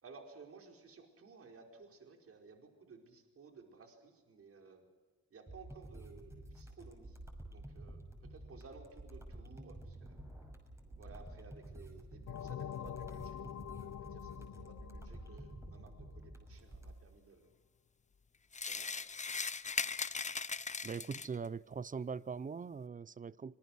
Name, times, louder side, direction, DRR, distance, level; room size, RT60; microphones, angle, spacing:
voice 1, 0.0-4.8 5.3-7.2 7.5-10.2 11.0-13.4 13.7-17.5 18.6-19.1, right 4 dB, 50° right, 4.7 m, -57 dB
sound 1, 5.5-16.9, right 1 dB, 10° right, 6.3 m, -51 dB
sound 2, 12.3-16.7, left 10 dB, 60° left, 1.1 m, -46 dB
sound 3, 18.5-21.5, left 5 dB, 25° left, 0.9 m, -39 dB
voice 2, 20.8-23.5, right 5 dB, 25° right, 0.6 m, -41 dB
26.0 x 21.0 x 6.3 m
cardioid pair, 90°, 30 cm